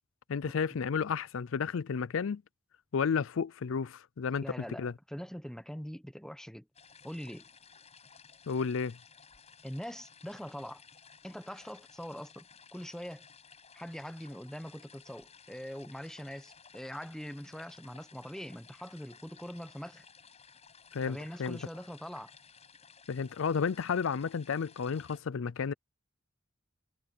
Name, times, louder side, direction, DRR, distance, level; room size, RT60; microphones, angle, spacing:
voice 1, 0.3-2.4 2.9-4.4 4.8-4.9 8.5-9.0 20.9-21.6 23.1-25.7, left 6 dB, 70° left, 0.4 m, -32 dB
voice 2, 4.4-6.7 7.0-7.5 9.6-10.8 11.2-12.4 12.7-13.2 13.7-20.1 21.0-22.3, equal, 5° left, 1.1 m, -43 dB
sound 1, 6.7-25.2, left 6 dB, 30° left, 6.5 m, -57 dB
head